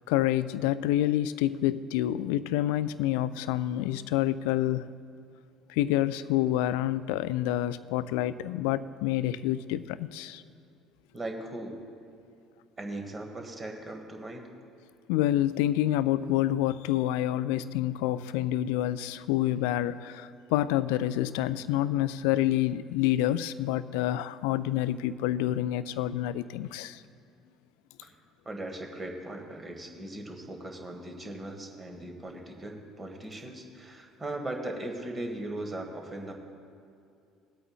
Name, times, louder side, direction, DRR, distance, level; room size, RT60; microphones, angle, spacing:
voice 1, 0.1-4.9 5.7-10.4 15.1-27.0, left 13 dB, 65° left, 15 dB, 0.3 m, -28 dB
voice 2, 11.1-11.8 12.8-14.5 28.0-28.1 28.4-36.3, right 1 dB, 25° right, 3 dB, 1.4 m, -38 dB
21.5 x 8.5 x 2.4 m, 2.4 s
figure-of-eight pair, 55°, 0 cm